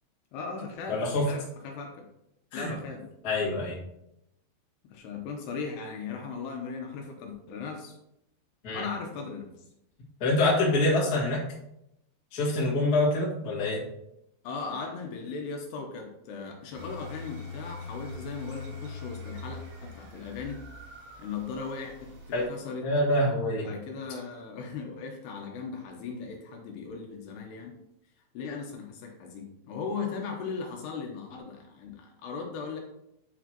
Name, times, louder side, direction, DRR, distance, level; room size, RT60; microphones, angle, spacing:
voice 1, 0.3-2.1 2.5-3.1 4.9-7.9 8.7-9.5 14.4-20.6 21.2-22.2 22.5-22.9 23.5-27.8 28.3-32.8, left 5 dB, 75° left, 2 dB, 2.7 m, -38 dB
voice 2, 0.9-1.3 2.5-2.7 3.2-3.8 8.6-8.9 10.2-11.4 12.3-13.9 22.3-22.5 22.8-23.7, left 2 dB, 55° left, -5 dB, 1.0 m, -26 dB
sound 1, 16.7-22.5, left 3 dB, 70° right, 4.5 m, -43 dB
9.1 x 4.8 x 2.9 m, 0.82 s
omnidirectional pair, 5.2 m